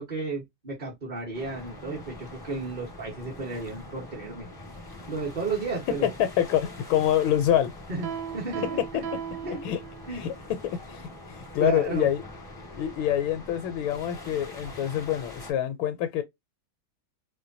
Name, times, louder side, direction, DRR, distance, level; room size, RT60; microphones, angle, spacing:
voice 1, 0.0-4.5 5.1-6.1 7.9-8.1 8.3-9.0 9.4-9.6 10.1-10.3 11.6-12.1, right 3 dB, 30° right, 0.9 m, -33 dB
sound 1, 1.3-15.5, left 1 dB, 15° left, 0.7 m, -44 dB
voice 2, 6.0-7.7 9.6-9.8 10.1-10.3 10.9-12.2 12.8-16.2, left 11 dB, 80° left, 1.3 m, -26 dB
Piano, 8.0-10.3, right 8 dB, 75° right, 1.4 m, -36 dB
4.4 x 2.2 x 2.5 m
omnidirectional pair, 2.3 m